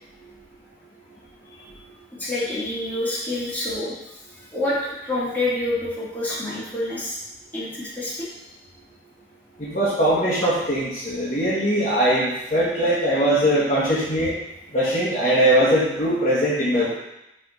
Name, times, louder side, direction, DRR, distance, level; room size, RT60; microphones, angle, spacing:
voice 1, 2.2-4.0 4.3-7.2 7.5-8.4 10.4-10.5, left 1 dB, 10° left, -8 dB, 1.8 m, -27 dB
voice 2, 9.6-14.3 14.7-16.9, right 1 dB, 35° left, -9 dB, 1.4 m, -21 dB
5.7 x 3.5 x 5.3 m, 0.88 s
head